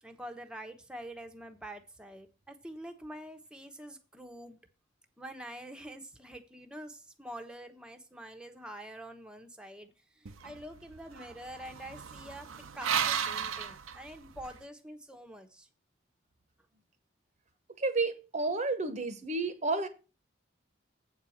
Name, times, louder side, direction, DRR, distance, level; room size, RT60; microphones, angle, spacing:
voice 1, 0.0-4.6 5.2-12.5 12.7-15.7, right 1 dB, 5° right, 1.0 m, -46 dB
sound 1, 10.3-14.6, right 8 dB, 90° right, 0.7 m, -35 dB
voice 2, 17.8-19.9, right 3 dB, 35° right, 1.0 m, -31 dB
8.2 x 4.6 x 7.1 m
head